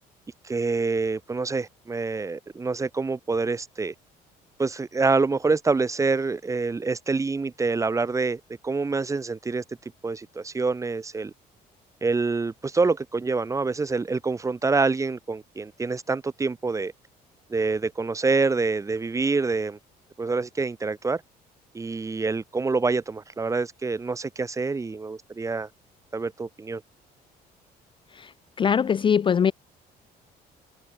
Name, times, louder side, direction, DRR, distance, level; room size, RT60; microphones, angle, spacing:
voice 1, 0.4-3.9 4.6-9.6 10.0-11.3 12.0-16.9 17.5-19.8 20.2-21.2 21.7-25.7 26.1-26.8, right 4 dB, 20° right, 0.7 m, -26 dB
voice 2, 28.6-29.5, left 7 dB, 30° left, 0.4 m, -21 dB
cardioid pair, 110°, 17 cm